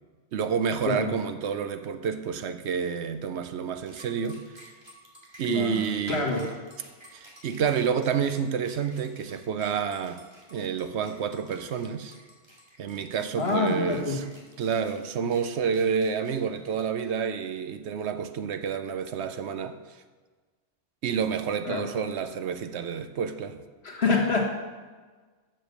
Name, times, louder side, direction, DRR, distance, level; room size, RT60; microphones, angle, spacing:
voice 1, 0.3-4.5 5.4-6.3 7.1-10.2 10.5-12.1 12.8-14.2 14.6-19.8 21.0-23.6, right 7 dB, 70° right, 10 dB, 0.9 m, -29 dB
voice 2, 0.8-1.2 5.4-6.5 13.4-14.3 21.6-21.9 23.8-24.4, left 3 dB, 60° left, -1 dB, 1.8 m, -27 dB
sound 1, 3.9-17.3, right 1 dB, 25° right, 2.0 m, -52 dB
7.7 x 6.9 x 6.6 m, 1.4 s
omnidirectional pair, 1.2 m